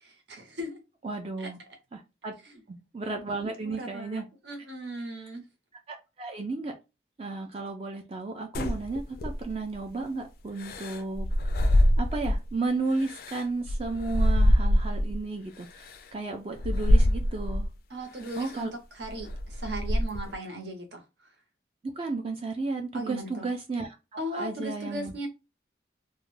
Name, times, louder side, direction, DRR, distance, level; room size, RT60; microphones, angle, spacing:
voice 1, 0.3-0.8 1.4-1.5 2.4-2.6 3.6-5.4 17.9-21.3 22.9-23.5 24.2-25.3, right 1 dB, 75° right, 0.8 m, -37 dB
voice 2, 1.0-1.6 1.9-2.3 2.7-4.3 5.9-6.7 7.2-11.3 12.0-17.7 18.3-18.7 22.0-24.0 24.3-25.3, right 3 dB, 30° right, 0.3 m, -33 dB
sound 1, 8.5-9.7 10.6-12.5 13.0-15.2 15.8-16.0 16.6-17.7 18.3-18.6 19.0-20.3, equal, 55° left, 0.3 m, -25 dB
2.3 x 2.1 x 3.1 m
head